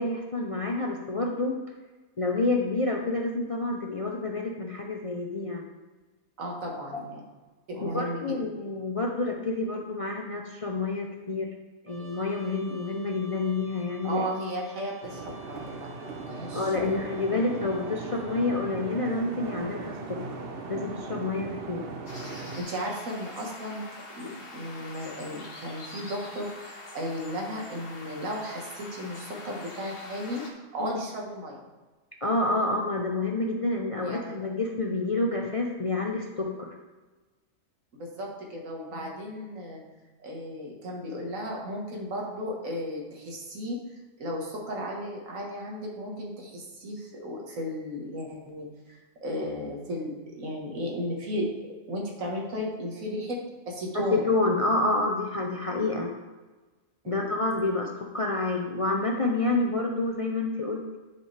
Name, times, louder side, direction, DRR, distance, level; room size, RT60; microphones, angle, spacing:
voice 1, 0.0-1.6 2.2-5.7 6.9-7.0 7.8-11.5 11.8-14.3 16.5-20.2 20.7-21.8 30.8-31.0 32.2-36.7 38.9-39.0 53.9-56.1 57.1-57.9 58.1-61.0, left 2 dB, 40° left, 1 dB, 0.5 m, -28 dB
voice 2, 6.4-7.2 7.7-8.2 14.0-17.0 22.3-23.8 24.2-31.6 34.0-34.4 38.0-39.8 40.2-43.8 44.2-53.4 53.7-54.2 57.0-57.4, equal, 85° right, 0 dB, 1.8 m, -35 dB
Trumpet, 11.9-18.7, equal, 20° right, 0.3 m, -50 dB
sound 1, 15.0-22.6, right 3 dB, 50° right, 0.9 m, -38 dB
sound 2, 22.1-30.5, left 2 dB, 70° left, 1.7 m, -44 dB
10.5 x 5.0 x 3.3 m, 1.3 s
omnidirectional pair, 1.4 m